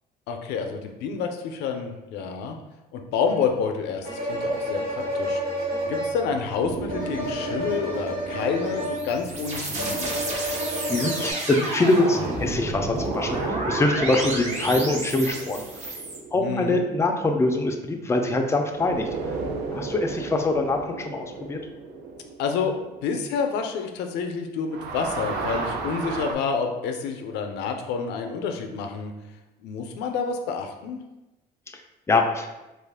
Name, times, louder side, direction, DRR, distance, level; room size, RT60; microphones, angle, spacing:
voice 1, 0.3-2.6 2.9-5.4 5.8-10.1 16.4-16.8 22.4-29.1 29.6-31.0, left 5 dB, 85° left, 5 dB, 0.5 m, -28 dB
sound 1, 3.3-3.4 4.0-11.3, equal, 60° right, 1.3 m, -30 dB
sound 2, 6.6-11.1 12.8-18.3 18.7-24.3 24.6-26.3, right 4 dB, 75° right, 0.5 m, -35 dB
sound 3, 8.6-16.2, right 2 dB, 40° right, 0.8 m, -31 dB
voice 2, 10.9-15.6 16.3-19.1 19.7-21.6 32.1-32.5, left 2 dB, 15° left, 4 dB, 0.4 m, -24 dB
3.1 x 2.4 x 3.4 m, 1.0 s
cardioid pair, 110°, 17 cm